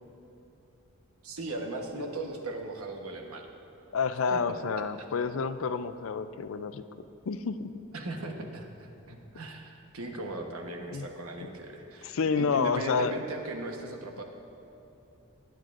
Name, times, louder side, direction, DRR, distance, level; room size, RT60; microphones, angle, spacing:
voice 1, 1.2-3.5 4.3-4.4 7.9-14.2, right 2 dB, 85° right, 3 dB, 1.1 m, -38 dB
voice 2, 3.9-6.8 7.3-7.7 10.9-11.1 12.0-13.2, left 5 dB, 70° left, 11 dB, 0.4 m, -29 dB
21.5 x 9.2 x 2.5 m, 2.8 s
head